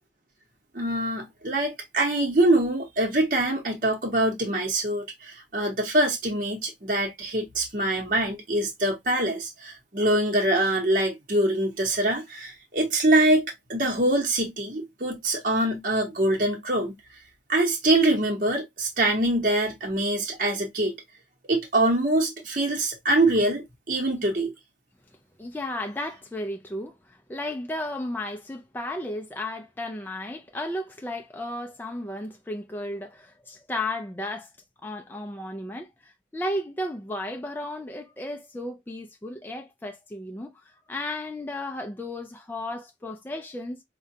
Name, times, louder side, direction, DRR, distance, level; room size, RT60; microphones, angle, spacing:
voice 1, 0.7-16.9 17.5-20.9 21.5-24.5, right 1 dB, 45° right, 0.9 m, -24 dB
voice 2, 25.4-34.5 34.8-43.8, left 1 dB, 10° left, 0.3 m, -34 dB
4.8 x 2.2 x 2.7 m
head